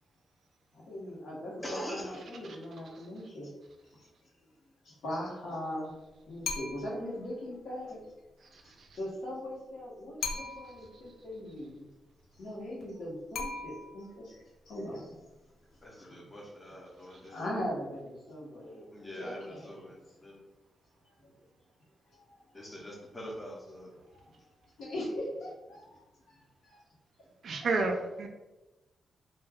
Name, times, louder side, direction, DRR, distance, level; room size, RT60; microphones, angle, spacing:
voice 1, 0.7-3.5 3.9-4.1 4.8-6.0 6.3-8.0 8.6-11.9 12.4-15.2 15.9-16.2 17.2-18.9 19.1-19.9 22.1-22.4 24.1-24.2 24.8-26.8 27.5-27.7, left 1 dB, 70° left, -5 dB, 1.0 m, -40 dB
voice 2, 1.6-2.3 15.8-17.4 18.9-20.4 22.5-23.9, equal, 10° left, -2 dB, 0.5 m, -43 dB
sound 1, 6.4-7.1 10.2-10.9 13.3-14.1, left 4 dB, 85° left, 0.4 m, -38 dB
voice 3, 8.5-8.9 27.4-28.3, right 3 dB, 55° right, 3 dB, 0.4 m, -31 dB
2.3 x 2.2 x 3.4 m, 1.0 s
wide cardioid pair, 165°, 0 cm